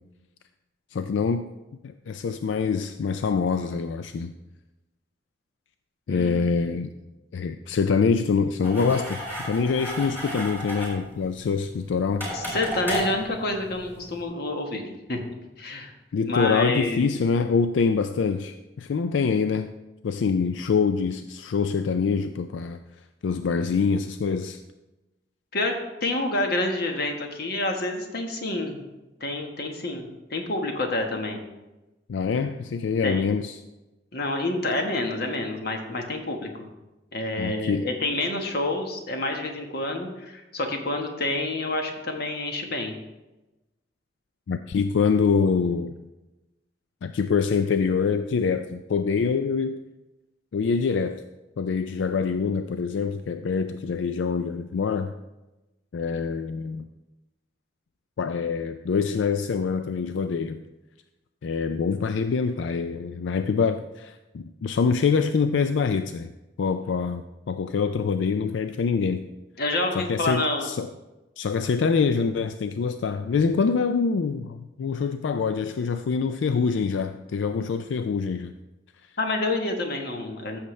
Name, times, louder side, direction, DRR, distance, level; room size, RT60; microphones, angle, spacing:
voice 1, 0.9-1.5 1.8-4.3 6.1-6.9 7.3-12.3 16.1-19.7 20.0-22.8 23.2-24.6 32.1-33.6 37.4-37.9 44.5-45.9 47.0-49.8 50.5-51.2 51.6-55.1 55.9-56.9 58.2-60.6 61.4-66.3 66.6-69.2 69.9-70.9 71.4-78.5, left 5 dB, 85° left, 9 dB, 0.4 m, -25 dB
voice 2, 6.1-6.4 12.3-15.2 15.6-15.9 16.2-17.0 25.5-25.7 26.0-28.8 29.2-31.4 33.0-33.2 34.1-36.7 37.1-42.9 69.6-70.7 79.2-80.6, left 2 dB, 55° left, 3 dB, 1.3 m, -28 dB
sound 1, 8.6-14.2, equal, 10° left, 3.3 m, -34 dB
14.0 x 6.6 x 3.2 m, 1.0 s
head